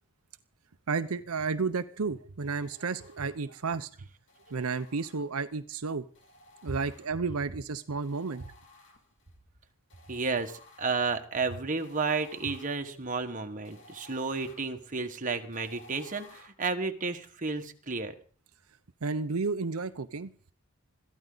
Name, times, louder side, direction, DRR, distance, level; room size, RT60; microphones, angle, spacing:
voice 1, 0.9-3.9 4.5-6.0 6.6-8.4 19.0-20.3, right 4 dB, 85° right, 10 dB, 0.7 m, -32 dB
sound 1, 2.4-3.7 4.3-5.6 6.1-7.5 8.0-9.3 9.9-16.5, left 2 dB, 55° left, 3.0 m, -57 dB
voice 2, 10.1-18.1, right 4 dB, 40° right, 5 dB, 1.5 m, -32 dB
21.5 x 14.5 x 4.0 m, 0.42 s
head